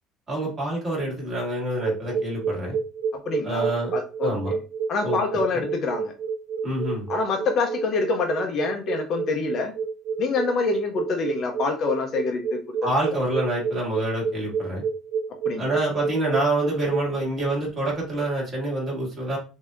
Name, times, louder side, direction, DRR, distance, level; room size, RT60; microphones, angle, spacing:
voice 1, 0.3-2.8 3.4-3.9 4.2-4.5 5.0-5.6 6.6-7.1 12.8-14.8 15.6-19.4, right 1 dB, 20° right, -3 dB, 2.0 m, -27 dB
sound 1, 1.8-17.2, right 6 dB, 55° right, 0.4 m, -28 dB
voice 2, 3.1-4.6 4.9-6.1 7.1-9.7 10.2-12.9 15.4-15.7, left 4 dB, 35° left, 4 dB, 0.6 m, -26 dB
6.5 x 2.7 x 2.5 m, 0.34 s
cardioid pair, 175°, 0 cm